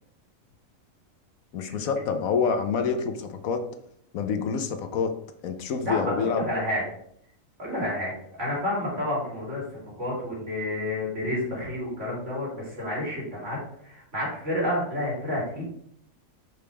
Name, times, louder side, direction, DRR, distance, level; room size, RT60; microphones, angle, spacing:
voice 1, 1.5-3.6 4.1-5.1 5.4-6.4, left 5 dB, 85° left, 7 dB, 1.2 m, -27 dB
voice 2, 5.9-6.8 7.6-8.1 8.4-13.6 13.8-15.6, left 1 dB, 60° right, -6 dB, 3.3 m, -30 dB
6.2 x 5.2 x 3.4 m, 0.68 s
omnidirectional pair, 1.4 m